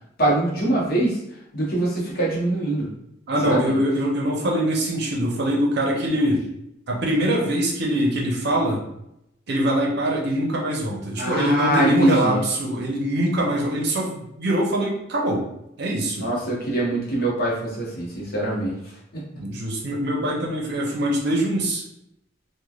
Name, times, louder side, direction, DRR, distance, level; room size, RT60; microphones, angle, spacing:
voice 1, 0.2-1.2 1.5-2.9 3.4-3.7 11.1-12.4 16.2-18.8 19.1-19.4, right 1 dB, 55° left, -5 dB, 1.0 m, -23 dB
voice 2, 3.3-6.5 6.9-8.8 9.5-15.4 15.8-16.3 19.4-21.8, right 1 dB, 60° right, -1 dB, 0.6 m, -23 dB
3.1 x 2.2 x 2.3 m, 0.81 s
head